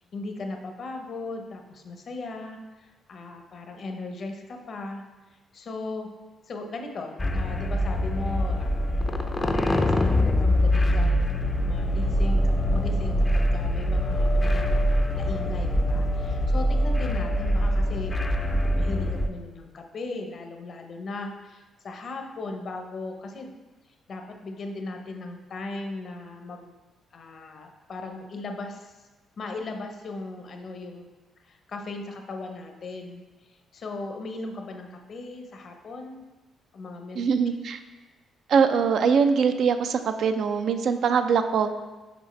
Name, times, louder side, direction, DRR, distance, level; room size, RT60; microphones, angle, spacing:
voice 1, 0.1-5.0 5.5-6.1 6.5-23.5 24.1-26.8 27.1-29.0 29.4-31.1 31.4-36.3 36.7-37.2, left 2 dB, 55° left, 4 dB, 0.7 m, -38 dB
sound 1, 7.2-19.3, equal, 20° left, 0.4 m, -24 dB
voice 2, 37.2-37.8 38.5-41.7, right 6 dB, 65° right, 8 dB, 0.4 m, -22 dB
6.1 x 4.9 x 3.2 m, 1.2 s
cardioid pair, 90°, 0 cm